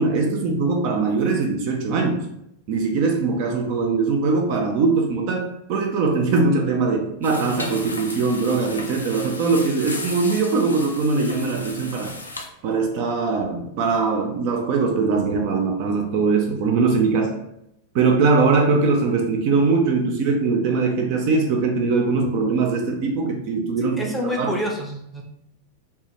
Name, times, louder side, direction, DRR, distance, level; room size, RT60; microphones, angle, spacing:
voice 1, 0.0-2.2 2.7-12.1 12.6-17.4 17.9-24.1 24.4-24.5, right 4 dB, 45° right, 2 dB, 0.3 m, -21 dB
sound 1, 7.2-12.5, left 2 dB, 80° left, 0.3 m, -35 dB
voice 2, 24.0-25.2, equal, 5° left, -1 dB, 0.5 m, -27 dB
2.1 x 2.1 x 2.9 m, 0.78 s
figure-of-eight pair, 90°, 0 cm